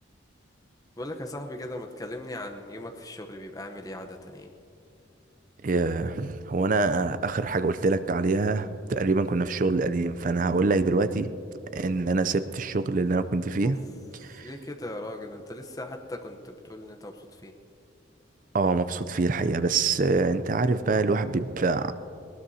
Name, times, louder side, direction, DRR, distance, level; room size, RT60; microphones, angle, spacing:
voice 1, 1.0-4.5 13.6-13.8 14.4-17.5, left 1 dB, 20° left, 3 dB, 0.8 m, -38 dB
voice 2, 5.6-11.3 11.7-13.8 14.2-14.5 18.5-21.9, right 3 dB, 40° right, 12 dB, 0.4 m, -25 dB
20.5 x 19.5 x 2.8 m, 2.7 s
head